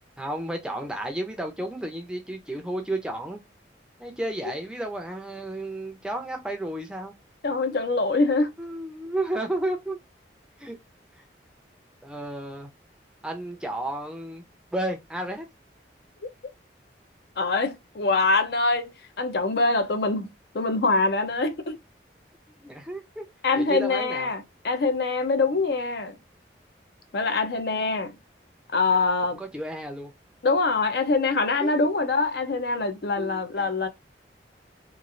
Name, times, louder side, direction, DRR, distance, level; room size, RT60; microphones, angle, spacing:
voice 1, 0.2-3.4 4.0-7.1 7.7-7.8 8.6-10.0 10.6-10.8 12.0-12.7 13.2-14.4 14.7-15.5 22.6-23.3 23.6-24.3 29.4-30.1 31.6-31.9 33.2-33.7, right 1 dB, 5° right, 0.5 m, -32 dB
voice 2, 7.4-8.5 17.4-18.9 19.2-21.8 23.4-26.2 27.1-28.2 28.7-29.4 30.4-33.9, left 3 dB, 60° left, 0.5 m, -24 dB
3.0 x 2.4 x 2.4 m
head